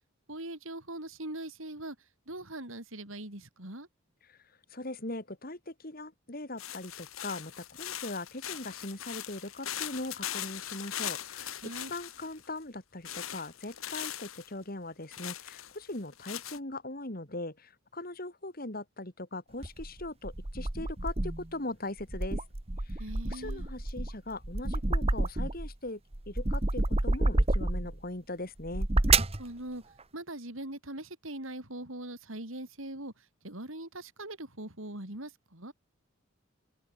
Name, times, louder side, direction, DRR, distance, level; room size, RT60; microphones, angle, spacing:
voice 1, 0.3-2.0 2.3-3.9 11.6-11.9 22.9-23.7 29.4-29.8 30.1-35.7, right 1 dB, 75° right, 5.4 m, -41 dB
voice 2, 4.7-22.4 22.8-23.0 23.3-26.0 26.3-28.9, left 2 dB, 45° left, 2.9 m, -40 dB
sound 1, 6.6-12.5 13.0-14.5 15.1-16.6, left 11 dB, 85° left, 2.7 m, -40 dB
sound 2, 19.6-21.5 22.0-25.7 26.1-28.0 28.6-29.4, right 2 dB, 30° right, 1.2 m, -29 dB
open air
head